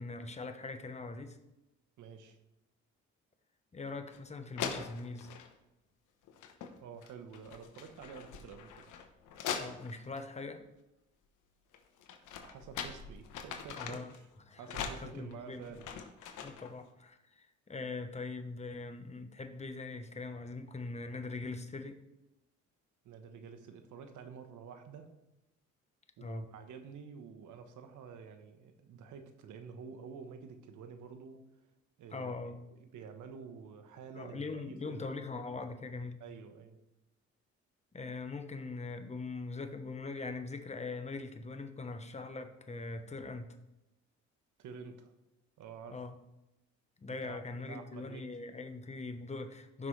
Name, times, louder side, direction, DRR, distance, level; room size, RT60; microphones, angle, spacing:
voice 1, 0.0-1.4 3.7-5.3 9.5-10.6 13.8-14.1 14.5-14.6 14.9-15.7 16.4-22.0 26.2-26.5 32.1-32.6 34.1-36.2 37.9-43.5 45.9-46.1 47.0-49.9, left 3 dB, 20° left, 7 dB, 1.0 m, -42 dB
voice 2, 2.0-2.4 6.8-8.9 12.4-14.2 14.6-15.9 23.0-25.1 26.2-31.4 32.0-32.3 32.7-35.1 36.2-36.8 44.6-45.1 45.6-46.0 47.1-47.4 47.7-48.2, right 6 dB, 80° right, 7 dB, 1.2 m, -49 dB
sound 1, 4.1-4.2 4.6-5.5 6.3-6.7 7.0-10.2 11.7-14.2 14.7-16.7, left 7 dB, 90° left, 1.1 m, -42 dB
15.0 x 6.1 x 3.3 m, 0.94 s
cardioid pair, 90°, 30 cm